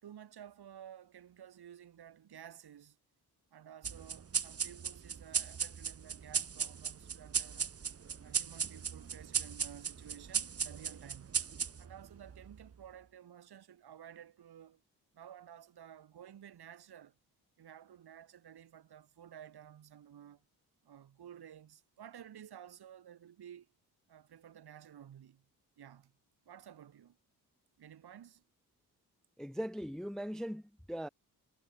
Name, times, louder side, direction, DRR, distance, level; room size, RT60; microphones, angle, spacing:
voice 1, 0.0-3.0 3.5-7.8 8.2-11.5 11.8-14.8 15.1-17.2 17.6-20.4 20.8-23.7 24.1-25.5 25.8-26.2 26.4-27.2 27.8-28.4, right 9 dB, 75° right, 6.2 m, -53 dB
sound 1, 3.8-12.7, right 6 dB, 35° right, 1.1 m, -37 dB
voice 2, 29.4-31.1, equal, ahead, 0.5 m, -40 dB
cardioid pair, 75°, 39 cm